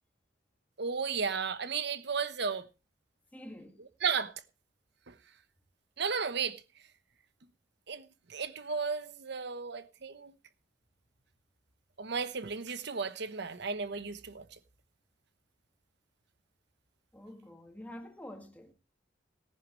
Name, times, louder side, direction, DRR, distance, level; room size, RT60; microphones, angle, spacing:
voice 1, 0.8-2.7 4.0-4.3 5.1-5.2 6.0-6.6 7.9-10.3 12.0-14.6, right 5 dB, 65° right, 1.0 m, -34 dB
voice 2, 3.3-3.8 17.1-18.7, left 1 dB, 10° left, 1.9 m, -47 dB
18.0 x 10.5 x 3.1 m
head